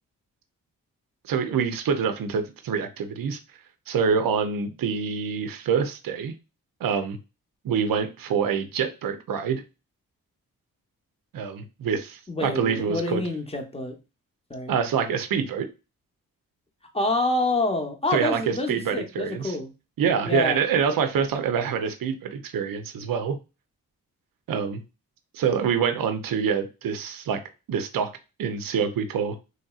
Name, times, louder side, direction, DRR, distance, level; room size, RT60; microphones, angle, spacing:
voice 1, 1.2-3.4 3.9-6.3 6.8-7.2 7.6-9.6 11.3-13.2 14.7-15.7 18.1-19.6 20.0-23.4 24.5-24.8 25.3-27.4 27.7-28.1 28.4-29.4, right 6 dB, 65° right, 7 dB, 0.6 m, -26 dB
voice 2, 12.3-14.0 14.5-14.8 16.9-19.7 20.3-20.6, left 2 dB, 15° left, 4 dB, 0.8 m, -27 dB
3.1 x 2.7 x 2.3 m, 0.29 s
cardioid pair, 45°, 36 cm